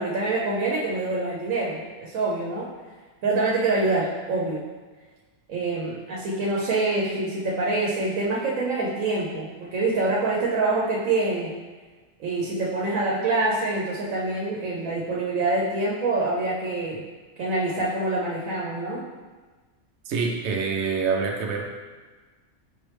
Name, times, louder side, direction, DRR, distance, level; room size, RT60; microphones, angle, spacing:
voice 1, 0.0-2.7 3.2-4.7 5.5-11.5 12.2-17.0 17.4-19.1, right 2 dB, 90° right, -4 dB, 1.1 m, -25 dB
voice 2, 20.1-21.6, right 5 dB, 65° right, 1 dB, 0.8 m, -26 dB
5.3 x 3.1 x 3.2 m, 1.3 s
omnidirectional pair, 1.4 m